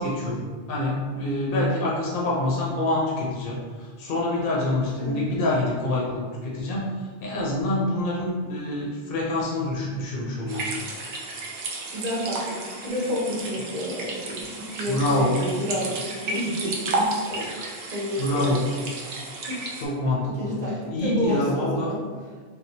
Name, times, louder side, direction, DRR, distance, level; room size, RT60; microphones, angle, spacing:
voice 1, 0.0-10.7 14.9-15.3 18.2-18.6 19.8-20.5 20.9-21.9, left 1 dB, 70° left, -4 dB, 0.8 m, -26 dB
sound 1, 10.5-19.9, right 2 dB, 85° right, 0.9 m, -32 dB
voice 2, 11.9-17.5 17.9-18.7 19.5-19.6 20.2-22.0, equal, 45° right, -5 dB, 0.9 m, -30 dB
3.5 x 2.3 x 2.7 m, 1.5 s
omnidirectional pair, 1.0 m